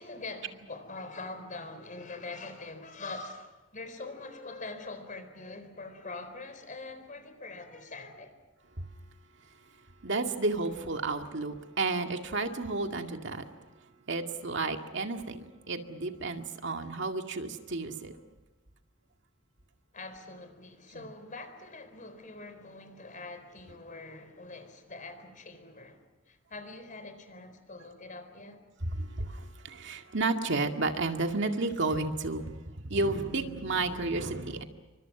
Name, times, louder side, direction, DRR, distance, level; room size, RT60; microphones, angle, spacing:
voice 1, 0.0-8.4 19.9-28.6, left 3 dB, 40° left, 4.3 m, -44 dB
voice 2, 10.0-13.5 14.1-18.2 20.9-21.1 28.9-34.6, right 3 dB, 65° right, 2.2 m, -32 dB
29.5 x 25.0 x 6.1 m
head